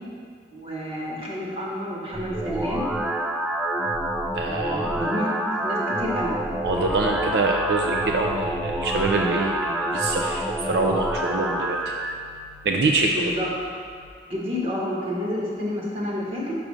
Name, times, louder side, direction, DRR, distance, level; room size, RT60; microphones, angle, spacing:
voice 1, 0.5-2.9 4.4-5.3 5.6-6.4 13.2-13.5 14.2-16.6, equal, 30° right, -4 dB, 1.4 m, -29 dB
sound 1, 2.1-12.1, right 1 dB, 5° right, 0.3 m, -27 dB
voice 2, 4.3-5.0 6.6-11.9 12.6-13.2, right 2 dB, 75° right, 1 dB, 0.5 m, -25 dB
6.1 x 5.1 x 6.1 m, 2.1 s
head